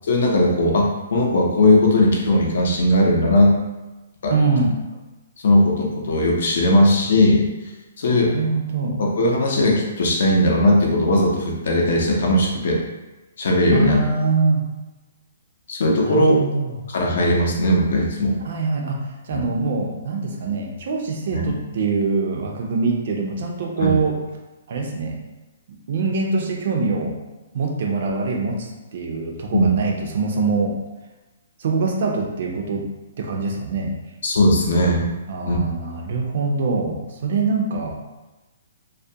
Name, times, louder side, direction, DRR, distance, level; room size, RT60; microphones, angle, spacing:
voice 1, 0.0-3.6 4.2-4.3 5.4-7.4 8.0-8.3 9.0-12.8 13.4-14.0 15.7-16.4 16.9-18.4 19.3-19.5 21.3-21.4 23.8-23.9 29.5-29.7 34.2-35.1 35.5-35.6, left 1 dB, 60° left, -1 dB, 0.6 m, -18 dB
voice 2, 4.3-4.8 8.1-9.0 13.7-14.7 16.0-16.7 18.4-24.2 24.7-25.2 25.9-27.2 27.5-30.8 31.6-32.9 33.2-34.0 35.3-38.0, right 4 dB, 50° right, 1 dB, 0.4 m, -23 dB
2.3 x 2.1 x 2.7 m, 1.1 s
hypercardioid pair, 170°, 0 cm